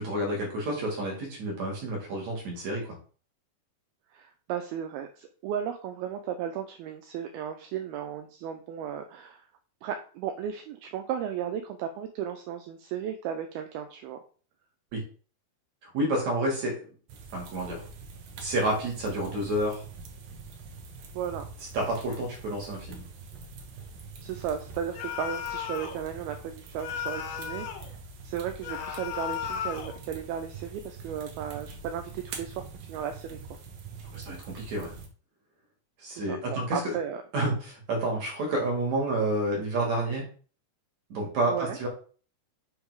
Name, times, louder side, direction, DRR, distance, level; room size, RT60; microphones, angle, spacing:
voice 1, 0.0-3.0 14.9-15.0 15.8-16.8 17.3-17.8 18.4-19.8 21.7-23.0 34.1-34.9 36.0-37.0 37.3-40.2 41.1-41.9, right 1 dB, 55° right, -1 dB, 2.4 m, -29 dB
voice 2, 4.1-9.5 9.8-14.2 21.1-21.4 24.2-27.7 28.2-33.4 36.1-37.2 41.5-41.8, right 9 dB, 85° right, 7 dB, 2.2 m, -35 dB
sound 1, 17.1-35.1, right 5 dB, 70° right, 2.4 m, -44 dB
sound 2, 25.0-26.0 26.8-27.9 28.6-30.0, left 9 dB, 75° left, 2.8 m, -35 dB
6.2 x 3.6 x 4.6 m, 0.40 s
omnidirectional pair, 4.9 m